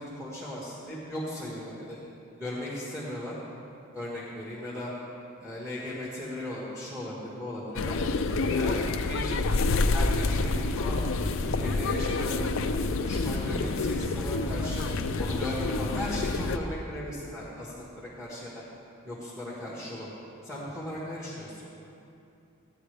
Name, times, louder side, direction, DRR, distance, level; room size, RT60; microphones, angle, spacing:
voice 1, 0.0-2.0 2.4-3.3 3.9-4.9 5.4-8.0 8.5-9.4 9.9-11.1 11.4-12.5 13.0-14.9 15.2-18.6 19.0-20.1 20.4-21.7, left 1 dB, 5° right, -7 dB, 1.6 m, -37 dB
sound 1, 7.8-16.6, left 3 dB, 70° left, 0.5 m, -28 dB
16.0 x 9.8 x 3.4 m, 2.7 s
head